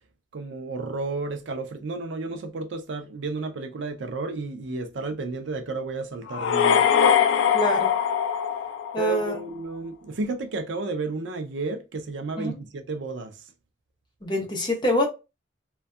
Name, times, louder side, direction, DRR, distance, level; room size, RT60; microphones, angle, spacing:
voice 1, 0.3-6.9 9.0-13.3, right 3 dB, 70° right, 0.5 m, -32 dB
sound 1, 6.3-9.3, left 8 dB, 80° left, 0.3 m, -22 dB
voice 2, 7.5-7.9 8.9-9.4 12.4-12.6 14.2-15.1, left 1 dB, 25° left, 0.6 m, -25 dB
2.6 x 2.2 x 2.3 m
head